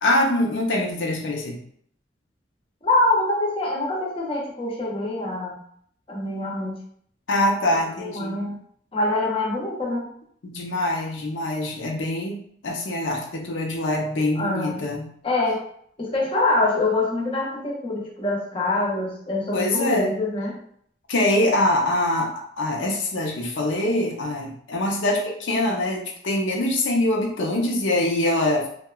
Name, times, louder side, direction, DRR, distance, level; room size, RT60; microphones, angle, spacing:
voice 1, 0.0-1.6 7.3-8.4 10.4-15.1 19.5-20.1 21.1-28.7, left 1 dB, 90° left, 0 dB, 0.6 m, -24 dB
voice 2, 2.8-5.6 6.1-6.8 8.0-8.6 8.9-10.1 14.4-14.8 15.2-15.6 16.0-20.6, left 2 dB, 30° left, -3 dB, 0.5 m, -25 dB
2.8 x 2.2 x 2.2 m, 0.63 s
head